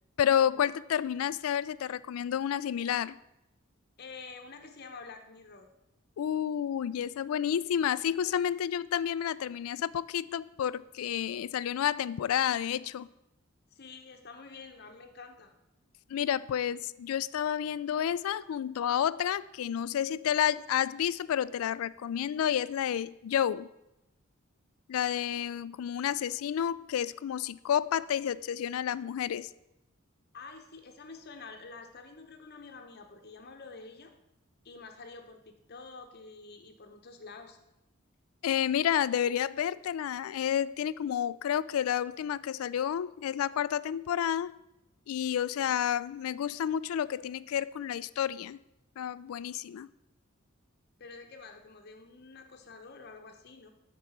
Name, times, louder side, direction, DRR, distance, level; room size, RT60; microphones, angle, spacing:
voice 1, 0.2-3.2 6.2-13.1 16.1-23.7 24.9-29.5 38.4-44.5 45.1-48.6 49.0-49.9, left 9 dB, 85° left, 0.3 m, -30 dB
voice 2, 4.0-5.7 13.7-15.5 30.3-34.1 34.6-37.6 45.6-45.8 51.0-53.7, left 4 dB, 50° left, 0.8 m, -48 dB
8.9 x 4.7 x 7.2 m
head